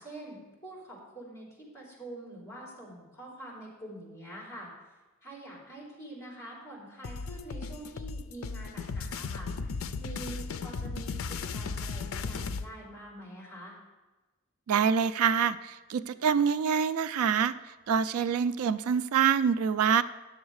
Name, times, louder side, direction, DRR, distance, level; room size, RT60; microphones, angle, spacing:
voice 1, 0.0-4.7 5.2-13.8, right 1 dB, 15° left, -4 dB, 3.3 m, -45 dB
sound 1, 7.0-12.7, left 4 dB, 75° left, 0.5 m, -36 dB
voice 2, 14.7-20.0, right 7 dB, 85° right, 14 dB, 0.4 m, -26 dB
10.0 x 7.2 x 4.8 m, 1.2 s
head